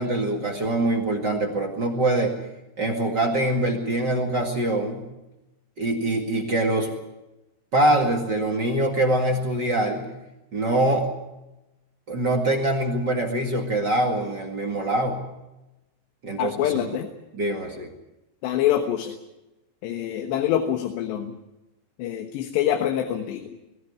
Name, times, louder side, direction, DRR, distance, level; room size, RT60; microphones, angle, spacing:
voice 1, 0.0-2.3 2.8-5.1 5.8-6.9 7.7-10.1 10.5-11.1 12.1-15.2 16.2-16.9 17.3-17.9, right 1 dB, 45° right, 2 dB, 1.5 m, -24 dB
voice 2, 16.4-17.1 18.4-19.2 19.8-21.3 22.0-23.5, left 11 dB, 75° left, 5 dB, 3.4 m, -25 dB
20.5 x 15.0 x 9.5 m, 0.98 s
omnidirectional pair, 5.1 m